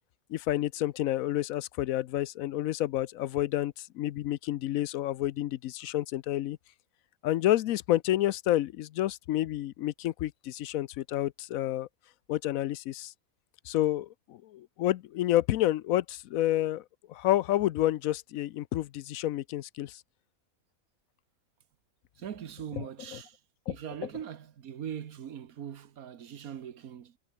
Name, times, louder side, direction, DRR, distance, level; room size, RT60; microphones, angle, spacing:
voice 1, 0.3-6.6 7.2-11.9 12.3-13.1 13.6-20.0 22.8-23.2 23.7-23.8, left 14 dB, 80° left, 1.0 m, -29 dB
voice 2, 22.2-23.4 23.7-27.2, right 9 dB, 90° right, 1.6 m, -41 dB
omnidirectional pair, 1.5 m